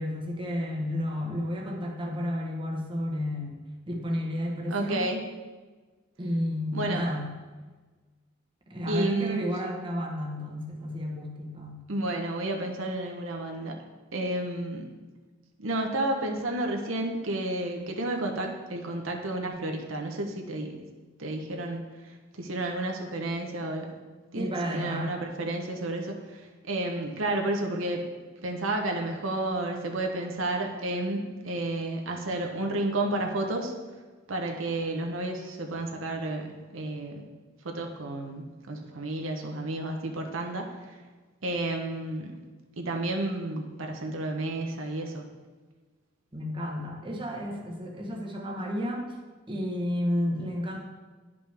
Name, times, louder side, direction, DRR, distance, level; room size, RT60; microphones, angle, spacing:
voice 1, 0.0-3.6 3.9-5.1 6.2-7.3 8.7-11.8 24.3-25.2 46.3-49.2 49.5-50.8, left 1 dB, 25° right, 0 dB, 1.0 m, -31 dB
voice 2, 4.7-5.2 6.7-7.0 8.9-9.4 11.9-13.8 14.1-14.9 15.6-20.9 21.2-24.0 24.3-28.0 28.4-33.7 34.3-37.2 37.6-41.0 41.4-42.4 42.8-45.3, right 2 dB, 70° right, 2 dB, 0.9 m, -31 dB
10.5 x 5.2 x 3.5 m, 1.3 s
head